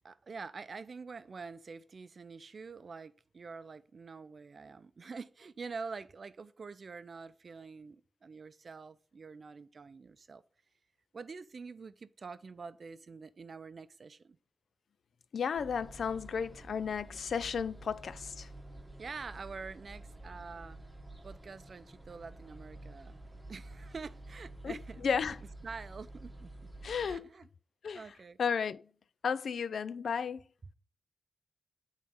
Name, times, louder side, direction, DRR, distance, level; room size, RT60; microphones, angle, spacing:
voice 1, 0.0-10.4 11.1-14.4 19.0-20.8 21.2-25.1 25.6-26.5 27.0-27.5 27.9-28.4, right 4 dB, 50° right, 0.5 m, -46 dB
voice 2, 15.3-18.5 24.6-24.8 25.0-25.4 26.8-27.3 27.8-28.0 28.4-28.8 29.2-30.4, left 6 dB, 75° left, 0.4 m, -33 dB
sound 1, 15.5-27.2, right 1 dB, 10° right, 1.2 m, -50 dB
8.6 x 4.0 x 5.4 m
wide cardioid pair, 125°, 0 cm